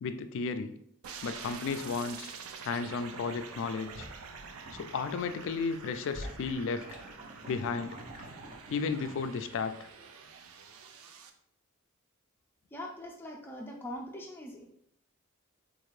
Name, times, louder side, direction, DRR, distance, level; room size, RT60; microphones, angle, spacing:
voice 1, 0.0-0.8 1.2-2.3 2.6-4.1 4.7-6.9 7.5-8.0 8.7-9.9, left 5 dB, 60° left, 10 dB, 0.3 m, -33 dB
sound 1, 1.0-11.3, right 6 dB, 75° right, 0.4 m, -47 dB
sound 2, 3.5-4.9 5.2-9.2, equal, 35° right, 0.7 m, -47 dB
voice 2, 12.7-14.6, left 1 dB, 10° left, -1 dB, 0.6 m, -42 dB
4.4 x 2.5 x 3.1 m, 0.71 s
head